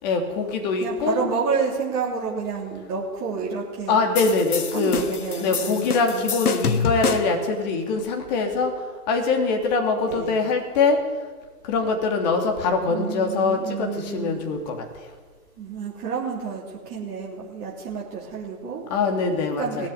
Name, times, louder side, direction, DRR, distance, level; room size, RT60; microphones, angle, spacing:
voice 1, 0.0-1.3 3.9-5.0 5.4-8.7 9.1-11.0 11.6-14.8 18.9-19.9, left 4 dB, 30° left, 3 dB, 3.1 m, -23 dB
voice 2, 0.8-4.0 4.7-6.4 10.0-10.3 12.9-14.4 15.6-18.8 19.6-19.9, right 5 dB, 20° right, -6 dB, 3.3 m, -29 dB
sound 1, 4.2-7.5, left 6 dB, 75° left, 1.6 m, -27 dB
19.0 x 14.5 x 9.6 m, 1.5 s
hypercardioid pair, 150°, 45 cm